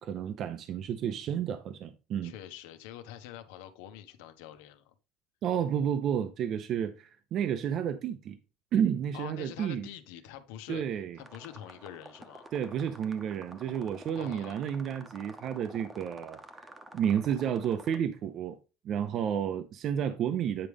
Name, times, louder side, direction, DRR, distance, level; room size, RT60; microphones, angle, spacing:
voice 1, 0.0-2.3 5.4-8.4 8.7-9.9 10.7-11.2 12.5-18.6 18.8-20.7, right 8 dB, 45° right, 0.6 m, -31 dB
voice 2, 2.2-4.9 9.1-10.8 11.1-12.5 14.1-14.7, left 11 dB, 85° left, 1.1 m, -46 dB
sound 1, 11.2-18.0, right 1 dB, 15° right, 1.0 m, -50 dB
9.0 x 4.9 x 3.5 m
cardioid pair, 145°, 0 cm